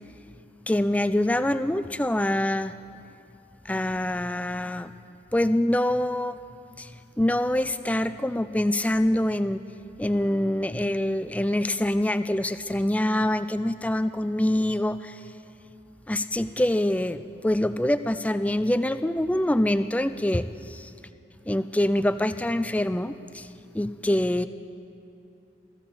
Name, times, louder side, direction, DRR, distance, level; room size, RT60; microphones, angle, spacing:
voice 1, 0.7-2.7 3.7-4.9 5.3-6.4 6.8-6.9 7.2-9.6 10.0-15.2 16.1-20.9 21.5-23.5 23.7-24.5, left 1 dB, 10° left, 12 dB, 0.3 m, -25 dB
22.5 x 14.5 x 4.2 m, 2.8 s
head